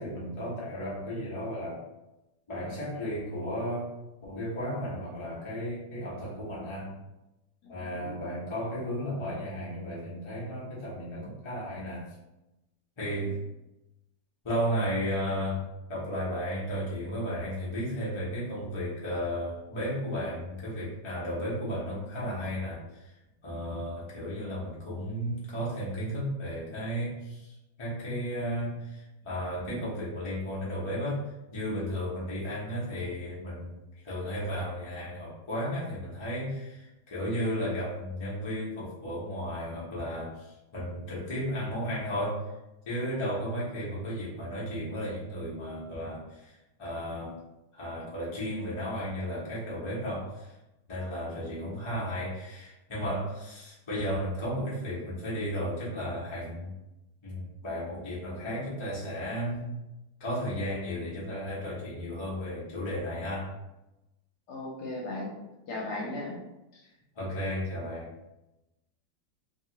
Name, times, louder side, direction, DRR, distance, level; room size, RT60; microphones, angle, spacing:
voice 1, 0.0-1.8 2.5-3.9 4.2-7.0 7.7-12.1 13.0-13.4 14.4-23.1 23.4-33.7 34.0-42.4 42.8-46.5 46.8-47.4 47.7-50.5 50.9-56.7 57.2-59.7 60.2-63.5 67.2-68.1, equal, 45° left, -7 dB, 0.3 m, -34 dB
voice 2, 7.6-8.2 13.1-13.3 64.5-65.3 65.7-66.4 66.7-66.8, left 2 dB, 65° left, -3 dB, 1.1 m, -37 dB
2.9 x 2.4 x 2.9 m, 0.97 s
omnidirectional pair, 2.1 m